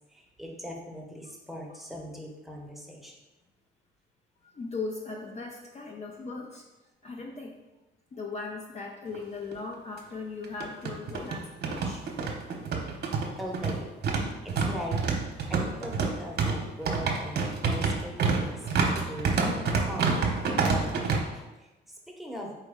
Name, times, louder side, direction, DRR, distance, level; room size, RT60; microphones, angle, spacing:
voice 1, 0.1-3.1 13.4-15.0 15.5-22.6, equal, ahead, -1 dB, 0.9 m, -40 dB
voice 2, 4.4-6.6 7.0-7.6 8.1-12.0, left 3 dB, 35° left, 0 dB, 0.5 m, -38 dB
sound 1, 9.1-9.2 9.5-9.6 10.4-21.2, right 4 dB, 55° right, 0.8 m, -28 dB
4.4 x 3.0 x 3.6 m, 1.1 s
cardioid pair, 90°, 20 cm